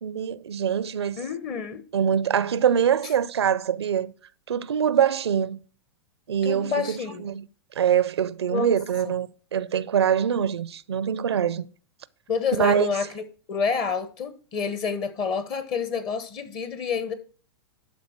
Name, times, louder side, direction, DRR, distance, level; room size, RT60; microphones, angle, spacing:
voice 1, 0.0-1.2 1.9-4.1 4.5-5.6 6.3-7.5 7.8-11.7 12.6-12.9, right 8 dB, 85° right, 0.5 m, -24 dB
voice 2, 1.2-1.8 6.4-7.2 8.5-8.8 12.3-17.1, left 5 dB, 40° left, 1.1 m, -28 dB
12.0 x 4.1 x 4.5 m
hypercardioid pair, 110°, 13 cm